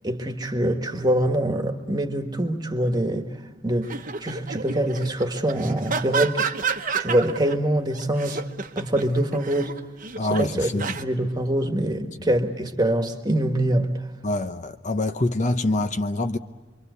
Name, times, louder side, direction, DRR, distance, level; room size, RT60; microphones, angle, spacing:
voice 1, 0.0-6.4 7.0-8.4 8.7-9.8 10.3-10.7 11.0-14.1, right 1 dB, 20° right, 1.6 m, -24 dB
sound 1, 3.8-7.6 8.0-11.0, right 5 dB, 45° right, 1.1 m, -30 dB
voice 2, 10.2-10.9 14.2-16.4, left 2 dB, 40° left, 0.8 m, -25 dB
26.0 x 24.0 x 8.2 m
head